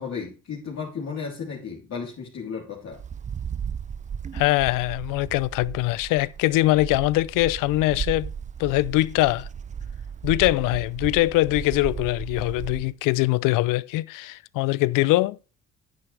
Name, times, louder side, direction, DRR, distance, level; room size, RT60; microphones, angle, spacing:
voice 1, 0.0-3.0, left 5 dB, 50° left, 3.2 m, -34 dB
Wind, 2.9-12.9, right 7 dB, 25° right, 0.4 m, -35 dB
voice 2, 4.3-8.3 8.6-9.5 10.2-15.4, left 18 dB, 75° left, 0.6 m, -22 dB
10.5 x 9.0 x 3.3 m
supercardioid pair, 70°, 33 cm